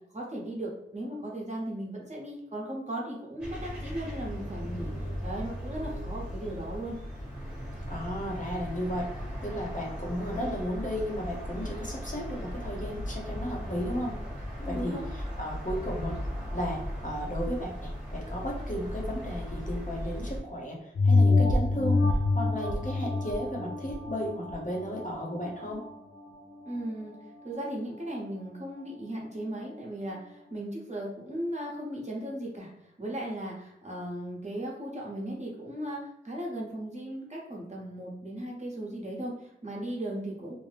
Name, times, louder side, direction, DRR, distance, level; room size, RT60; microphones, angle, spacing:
voice 1, 0.1-7.0 14.6-15.0 26.6-27.1 27.4-40.6, right 1 dB, 35° right, -3 dB, 0.9 m, -37 dB
sound 1, 3.4-20.4, equal, 5° right, 1.1 m, -37 dB
voice 2, 7.9-9.1 9.4-14.1 14.6-16.1 16.5-25.8, equal, 40° left, -3 dB, 0.8 m, -34 dB
sound 2, 20.9-25.9 26.4-26.5, left 3 dB, 85° left, 0.4 m, -26 dB
2.6 x 2.1 x 3.3 m, 0.81 s
wide cardioid pair, 55°, 20 cm